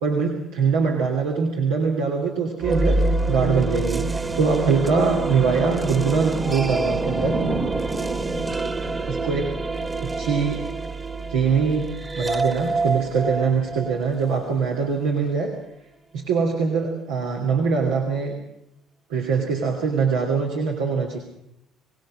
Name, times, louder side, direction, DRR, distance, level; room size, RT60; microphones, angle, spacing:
voice 1, 0.0-4.1 4.4-7.4 9.1-9.5 10.2-10.7 11.3-11.9 12.1-15.5 16.1-18.3 19.1-21.2, right 5 dB, 80° right, 0 dB, 2.9 m, -23 dB
sound 1, 2.6-14.4, right 2 dB, 25° right, 1.9 m, -26 dB
24.0 x 18.5 x 6.3 m, 0.81 s
hypercardioid pair, 60°, 0 cm